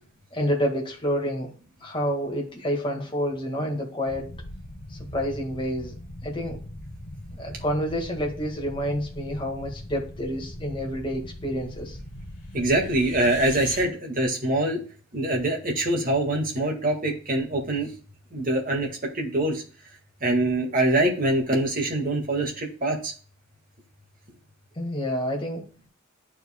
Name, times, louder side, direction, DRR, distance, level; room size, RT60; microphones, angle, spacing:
voice 1, 0.3-1.5 1.8-4.3 4.9-6.0 6.2-6.6 7.3-12.0 24.7-25.7, equal, 25° left, -1 dB, 1.7 m, -28 dB
sound 1, 4.1-13.8, left 1 dB, 45° left, 2.3 m, -40 dB
voice 2, 12.5-14.8 15.1-17.9 18.3-18.9 19.1-19.6 20.2-23.1, right 1 dB, 40° right, 1 dB, 1.7 m, -24 dB
11.0 x 4.6 x 2.2 m, 0.39 s
head